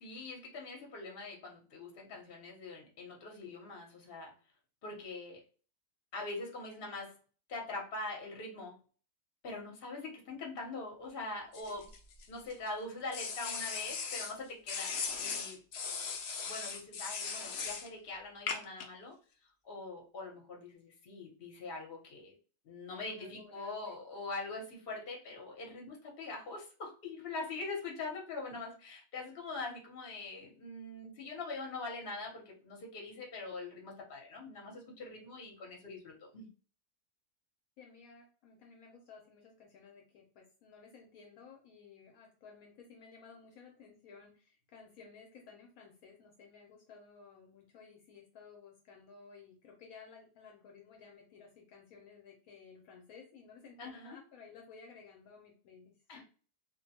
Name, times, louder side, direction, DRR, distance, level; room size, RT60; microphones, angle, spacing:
voice 1, 0.0-4.3 4.8-5.4 6.1-7.2 7.5-8.8 9.4-11.9 12.3-15.6 16.5-19.2 19.6-22.3 22.6-36.5 53.8-54.2 56.1-56.2, left 3 dB, 45° left, -1 dB, 0.9 m, -43 dB
sound 1, 11.5-12.5 13.1-14.3 14.7-17.9 18.5-18.8, left 5 dB, 90° left, 0.5 m, -38 dB
voice 2, 23.2-24.0 37.8-56.2, left 5 dB, 70° left, 1 dB, 1.0 m, -56 dB
2.5 x 2.1 x 2.7 m, 0.39 s
omnidirectional pair, 1.6 m